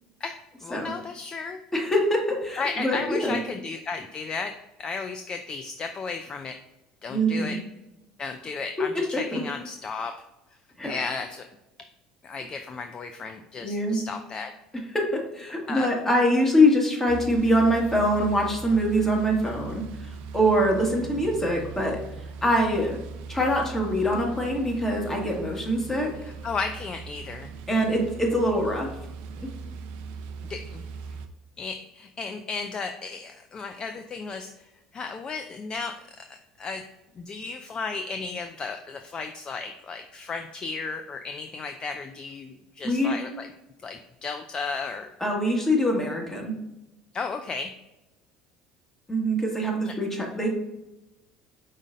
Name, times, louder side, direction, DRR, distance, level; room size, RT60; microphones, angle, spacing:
voice 1, 0.6-1.6 2.6-6.6 7.0-7.6 8.2-10.2 10.8-11.5 12.2-14.5 15.7-15.9 26.2-27.5 30.5-30.8 31.6-36.8 37.2-43.5 43.8-45.1 47.1-47.8 49.8-49.9, left 4 dB, 35° left, 7 dB, 0.4 m, -34 dB
voice 2, 1.7-3.4 7.1-7.6 9.3-9.4 10.8-11.0 13.6-14.0 14.9-22.0 22.4-23.0 23.3-26.1 27.7-28.9 29.4-29.5 42.8-43.2 45.2-46.5 49.1-50.5, equal, 15° left, 0 dB, 1.6 m, -24 dB
sound 1, 17.1-31.3, right 5 dB, 65° right, 0.5 m, -40 dB
4.9 x 4.1 x 2.5 m, 0.96 s
hypercardioid pair, 70°, 2 cm